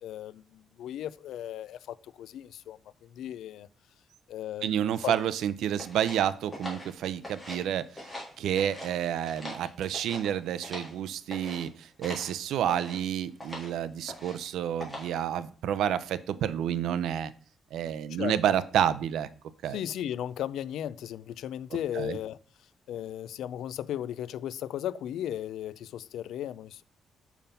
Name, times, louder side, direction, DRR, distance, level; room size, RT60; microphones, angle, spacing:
voice 1, 0.0-3.7 4.3-5.1 18.1-18.4 19.7-22.4 22.9-26.8, left 11 dB, 85° left, 0.4 m, -36 dB
voice 2, 4.6-8.0 8.4-17.3 17.7-19.3 19.6-19.8 22.0-22.2, right 10 dB, 85° right, 0.6 m, -29 dB
sound 1, 5.8-7.7 7.9-8.9 9.2-11.0 11.3-11.6 12.0-12.3 12.7-13.0 13.4-13.7 14.1-14.5 14.8-15.2, left 1 dB, 5° left, 3.3 m, -42 dB
7.2 x 5.7 x 5.4 m
cardioid pair, 150°, 0 cm